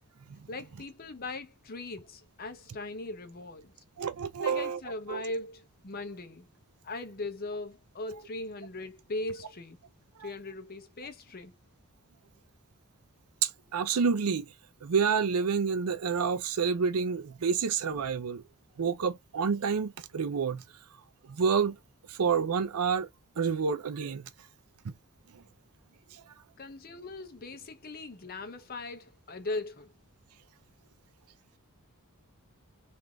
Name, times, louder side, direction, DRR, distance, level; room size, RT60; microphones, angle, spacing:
voice 1, 0.5-3.7 4.4-6.5 6.8-9.8 10.2-11.5 26.6-29.9, left 2 dB, 45° left, 0.7 m, -39 dB
voice 2, 4.0-4.8 5.1-5.2 10.2-10.3 13.4-14.5 14.8-18.4 18.8-20.6 21.3-21.8 22.1-23.1 23.4-24.3 24.8-24.9 25.3-25.4 26.1-26.2, right 6 dB, 90° right, 0.5 m, -28 dB
3.2 x 2.5 x 2.3 m
head